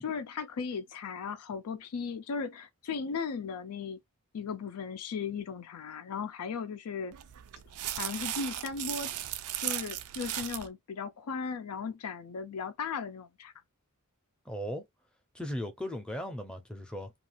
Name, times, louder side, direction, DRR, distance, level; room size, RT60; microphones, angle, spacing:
voice 1, 0.0-4.0 4.3-7.1 7.9-9.1 9.6-13.5, left 5 dB, 85° left, 0.4 m, -37 dB
sound 1, 7.1-10.7, right 12 dB, 75° right, 0.4 m, -36 dB
voice 2, 14.5-14.9 15.3-17.1, equal, 5° left, 0.5 m, -37 dB
2.4 x 2.4 x 2.8 m
head